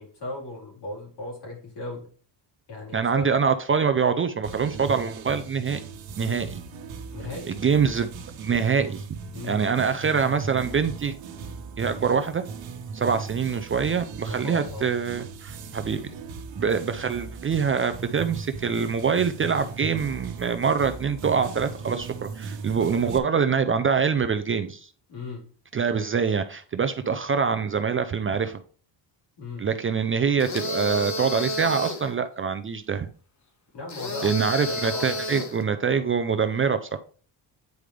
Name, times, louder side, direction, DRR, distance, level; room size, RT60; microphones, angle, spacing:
voice 1, 0.0-2.1 2.7-3.3 6.2-6.5 7.1-7.6 9.3-9.6 14.3-14.9 25.1-25.4 29.4-29.7 33.7-35.3, left 2 dB, 65° left, 4.2 m, -37 dB
voice 2, 2.9-5.8 6.2-6.6 7.5-8.1 8.4-9.0 9.4-11.1 11.8-12.4 12.9-16.1 16.6-24.9 25.7-28.6 29.6-33.1 34.2-37.0, right 6 dB, 30° right, 0.4 m, -25 dB
sound 1, 4.4-23.2, right 5 dB, 80° right, 1.2 m, -38 dB
sound 2, 30.4-32.1 33.9-35.6, left 1 dB, 40° left, 1.3 m, -31 dB
9.3 x 5.0 x 3.3 m
cardioid pair, 140°, 45 cm